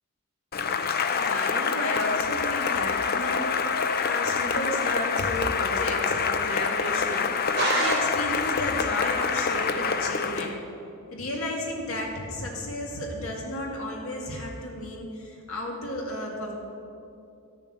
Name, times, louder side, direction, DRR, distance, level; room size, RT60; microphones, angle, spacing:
Cheering / Applause, 0.5-10.6, left 5 dB, 45° left, 0.6 m, -26 dB
voice 1, 1.1-10.6 11.1-16.5, left 1 dB, 65° left, -1 dB, 2.2 m, -33 dB
sound 1, 7.6-8.7, right 2 dB, 45° right, 3.0 m, -28 dB
12.5 x 7.1 x 7.4 m, 2.6 s
head